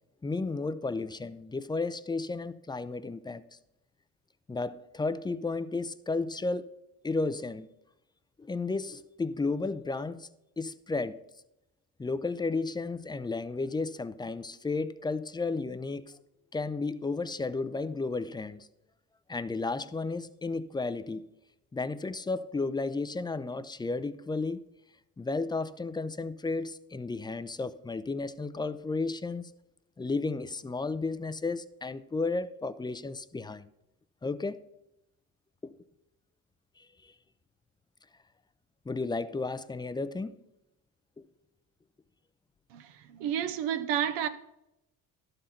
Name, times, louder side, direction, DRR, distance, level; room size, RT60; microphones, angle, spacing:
voice 1, 0.2-3.4 4.5-6.7 7.0-7.7 8.4-10.3 10.6-11.2 12.0-16.2 16.5-18.7 19.3-21.2 21.7-24.6 25.2-29.5 30.0-33.7 34.2-34.6 35.6-35.7 36.8-37.1 38.9-40.4 41.2-41.3, left 3 dB, 10° left, 0.4 m, -33 dB
voice 2, 42.7-44.3, right 9 dB, 80° right, 0.7 m, -31 dB
12.0 x 4.0 x 5.6 m
supercardioid pair, 70°, 42 cm